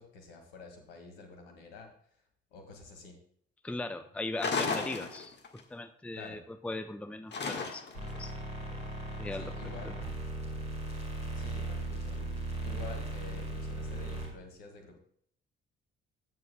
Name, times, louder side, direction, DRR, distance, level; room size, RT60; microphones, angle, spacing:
voice 1, 0.0-1.9 2.5-3.2 6.1-6.4 9.3-10.0 11.3-15.0, left 4 dB, 70° left, 3 dB, 2.0 m, -49 dB
voice 2, 3.6-7.9 8.1-8.3 9.2-9.5 9.8-9.9, left 2 dB, 5° left, 9 dB, 0.7 m, -39 dB
sound 1, 4.4-5.6 7.3-8.1, left 4 dB, 35° left, 1.6 m, -33 dB
sound 2, 7.9-14.3, right 2 dB, 85° right, 2.5 m, -37 dB
14.5 x 9.3 x 2.3 m, 0.64 s
figure-of-eight pair, 45°, 30 cm